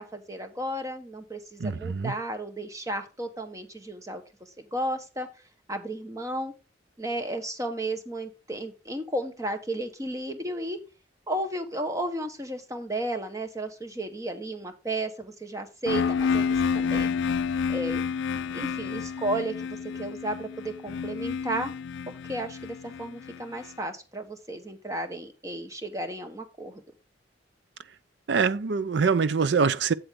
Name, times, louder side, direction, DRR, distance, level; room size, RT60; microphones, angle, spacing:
voice 1, 0.0-4.2 4.7-5.3 5.7-6.5 7.0-10.8 11.3-17.1 17.7-18.0 18.5-21.7 22.1-26.8, right 1 dB, 15° right, 1.2 m, -33 dB
voice 2, 1.6-2.1 28.3-29.9, right 5 dB, 65° right, 0.5 m, -24 dB
sound 1, 15.9-23.7, left 6 dB, 80° left, 0.4 m, -29 dB
8.1 x 7.9 x 3.7 m
head